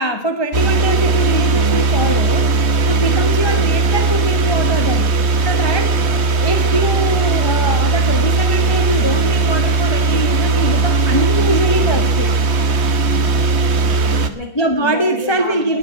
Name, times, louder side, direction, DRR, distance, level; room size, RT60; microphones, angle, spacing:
voice 1, 0.0-2.5 2.9-5.1 5.4-6.0 6.4-12.3 14.5-15.8, right 1 dB, 15° left, 5 dB, 1.0 m, -22 dB
sound 1, 0.5-14.3, right 4 dB, 45° right, 1.0 m, -17 dB
voice 2, 3.1-3.5 5.9-6.4 12.8-14.5 14.8-15.8, equal, 65° right, 0 dB, 5.6 m, -32 dB
20.0 x 6.8 x 8.1 m, 0.65 s
omnidirectional pair, 2.3 m